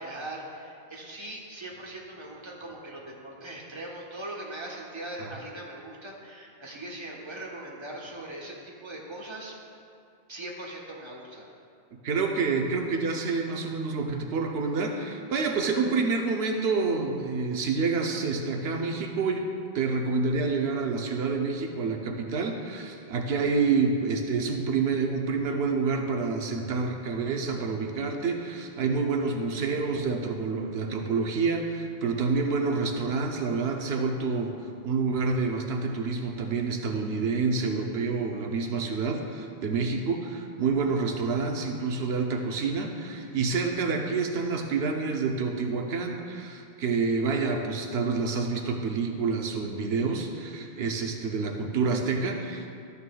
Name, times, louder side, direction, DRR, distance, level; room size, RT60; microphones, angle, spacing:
voice 1, 0.0-9.5 10.3-11.5, right 1 dB, 30° right, -3 dB, 1.2 m, -40 dB
voice 2, 12.0-19.5 19.7-52.7, right 4 dB, 85° right, 2 dB, 1.0 m, -28 dB
12.5 x 9.6 x 2.3 m, 2.4 s
omnidirectional pair, 1.0 m